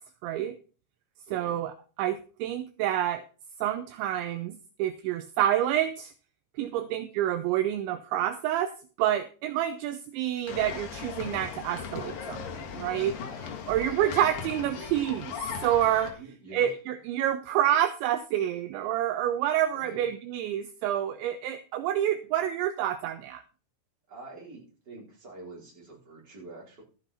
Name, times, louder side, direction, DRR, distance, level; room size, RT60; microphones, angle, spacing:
voice 1, 0.2-0.6 1.3-1.7 2.0-3.2 3.6-6.1 6.6-8.7 9.0-15.3 15.6-16.2 16.5-23.4, right 11 dB, 80° right, 9 dB, 2.7 m, -28 dB
voice 2, 1.3-1.6 6.7-6.9 13.8-14.0 16.2-16.7 19.7-20.1 24.1-26.8, right 3 dB, 20° right, -3 dB, 4.0 m, -46 dB
sound 1, 10.5-16.1, left 6 dB, 60° left, 2.5 m, -38 dB
13.0 x 8.1 x 4.2 m, 0.37 s
omnidirectional pair, 5.9 m